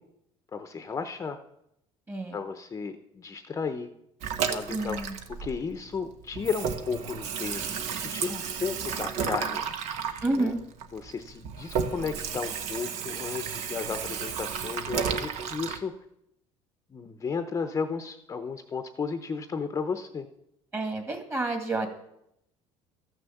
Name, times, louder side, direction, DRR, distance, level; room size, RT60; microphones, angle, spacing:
voice 1, 0.5-1.4 2.3-3.9 4.5-5.0 5.4-9.7 10.3-10.5 10.9-15.9 16.9-20.3, left 5 dB, 25° left, 8 dB, 0.7 m, -34 dB
Water tap faucet / Sink (filling or washing), 4.2-6.0 6.3-15.8, right 7 dB, 70° right, 1.1 m, -33 dB
voice 2, 4.7-5.1 10.2-10.6 20.7-21.9, right 2 dB, 20° right, 5 dB, 2.0 m, -29 dB
13.0 x 6.3 x 7.1 m, 0.79 s
cardioid pair, 125°, 12 cm